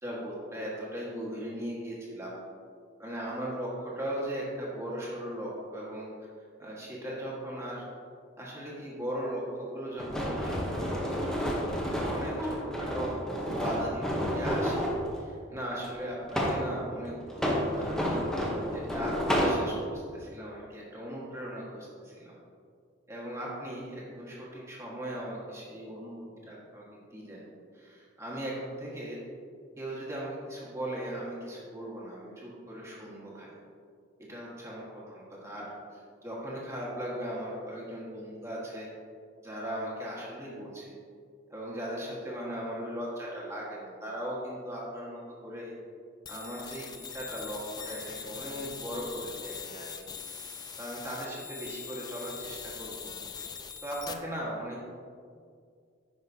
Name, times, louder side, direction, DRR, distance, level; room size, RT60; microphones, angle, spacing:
voice 1, 0.0-2.3 3.0-6.1 6.6-7.8 8.4-13.1 13.6-22.4 23.1-27.4 27.7-29.2 29.8-33.5 34.3-38.9 39.4-40.9 41.5-45.7 46.3-50.2 50.8-53.1 53.8-54.9, right 1 dB, 15° right, -5 dB, 1.5 m, -38 dB
sound 1, 10.0-15.0 15.8-16.7 17.3-19.6, equal, 5° left, 0.8 m, -30 dB
sound 2, 46.3-54.1, left 6 dB, 20° left, 0.3 m, -42 dB
10.5 x 5.6 x 2.7 m, 2.2 s
head